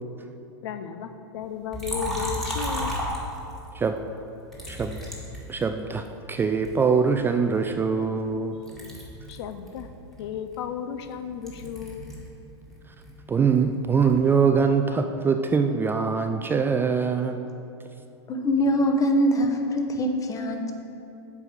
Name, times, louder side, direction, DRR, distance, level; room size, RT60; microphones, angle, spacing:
voice 1, 0.6-3.0 9.3-9.9 10.2-12.1, left 8 dB, 70° left, 9 dB, 0.5 m, -34 dB
Liquid, 1.7-3.7 4.5-6.1 6.6-8.4 8.6-12.3 12.6-14.2, equal, ahead, 1.9 m, -34 dB
voice 2, 4.7-5.0 5.5-8.6 13.3-17.5, right 5 dB, 15° right, 6 dB, 0.3 m, -23 dB
voice 3, 18.3-20.7, equal, 25° left, 3 dB, 1.0 m, -23 dB
7.7 x 4.7 x 6.8 m, 2.9 s
hypercardioid pair, 115°, 15 cm